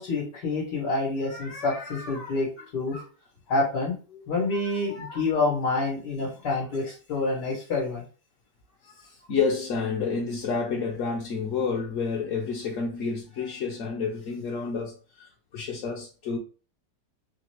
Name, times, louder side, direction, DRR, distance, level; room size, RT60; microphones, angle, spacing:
voice 1, 0.0-3.1 3.5-8.0, left 3 dB, 85° left, 2.2 m, -28 dB
voice 2, 9.3-16.4, left 5 dB, 60° left, 0.9 m, -29 dB
4.2 x 3.2 x 3.0 m
omnidirectional pair, 1.8 m